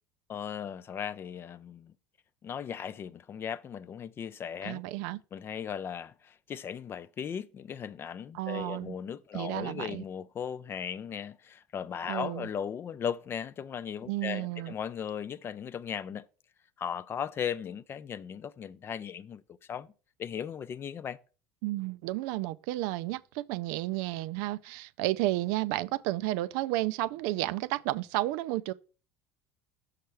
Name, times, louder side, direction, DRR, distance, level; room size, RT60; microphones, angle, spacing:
voice 1, 0.3-1.9 2.4-4.8 5.3-16.3 16.8-19.4 19.7-19.9 20.2-21.2, left 8 dB, 35° left, 0.5 m, -37 dB
voice 2, 4.6-5.2 8.3-9.0 9.3-10.0 12.1-12.5 14.1-14.7 21.6-28.7, right 17 dB, 75° right, 0.4 m, -32 dB
6.4 x 5.7 x 3.4 m
supercardioid pair, 100°, 7 cm